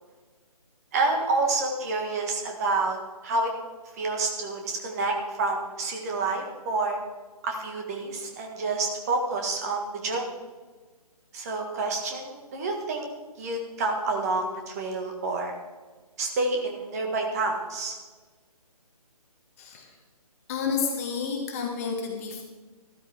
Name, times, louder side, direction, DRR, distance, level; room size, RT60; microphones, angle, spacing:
voice 1, 0.9-3.0 3.2-3.5 4.0-7.0 7.4-10.3 11.3-13.1 13.4-15.5 16.2-17.9, right 3 dB, 25° right, 2 dB, 1.7 m, -28 dB
voice 2, 19.6-20.0 20.5-22.4, left 5 dB, 25° left, 2 dB, 1.5 m, -30 dB
13.5 x 13.0 x 3.6 m, 1.3 s
figure-of-eight pair, 145°, 20 cm